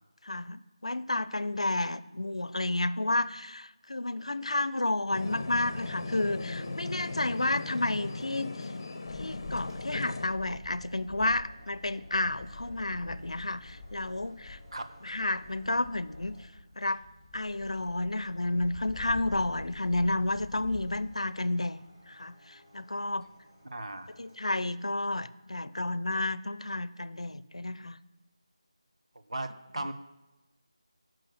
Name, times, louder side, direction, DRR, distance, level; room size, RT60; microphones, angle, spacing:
voice 1, 0.2-8.5 9.2-14.6 15.0-16.4 16.8-17.0 17.3-21.8 22.1-23.3 24.2-28.0 29.8-29.9, left 2 dB, 80° left, 16 dB, 0.5 m, -31 dB
sound 1, 5.1-10.3, left 3 dB, 45° left, 0.8 m, -37 dB
sound 2, 6.3-24.5, equal, 20° right, 3.2 m, -58 dB
sound 3, 9.1-21.1, left 3 dB, 10° left, 1.1 m, -47 dB
voice 2, 23.6-24.1 29.3-29.9, right 2 dB, 75° right, 7 dB, 1.0 m, -36 dB
8.7 x 6.1 x 4.9 m, 1.1 s
figure-of-eight pair, 165°, 3 cm